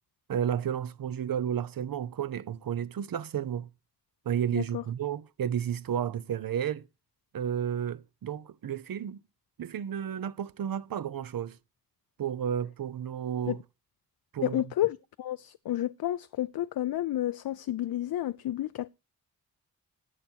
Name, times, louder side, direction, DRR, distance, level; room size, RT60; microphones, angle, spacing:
voice 1, 0.3-3.7 4.3-6.9 7.3-9.2 9.6-11.6 12.2-13.6 14.3-14.6, right 9 dB, 65° right, 0.7 m, -32 dB
voice 2, 4.5-4.8 13.5-13.6 14.4-18.9, left 13 dB, 70° left, 0.5 m, -31 dB
11.0 x 8.3 x 4.5 m
wide cardioid pair, 95°, 37 cm